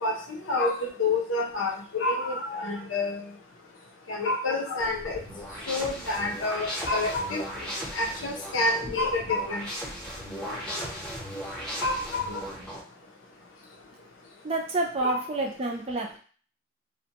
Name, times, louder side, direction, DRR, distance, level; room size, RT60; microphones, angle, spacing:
voice 1, 0.0-3.2 4.1-5.2 5.7-7.4 7.9-9.7 11.8-12.4 15.0-15.2, left 2 dB, 75° left, 1 dB, 0.7 m, -28 dB
sound 1, 4.8-12.8, equal, 5° left, 0.8 m, -37 dB
voice 2, 14.4-16.2, right 2 dB, 30° right, 1 dB, 0.4 m, -29 dB
2.5 x 2.2 x 2.8 m, 0.41 s
head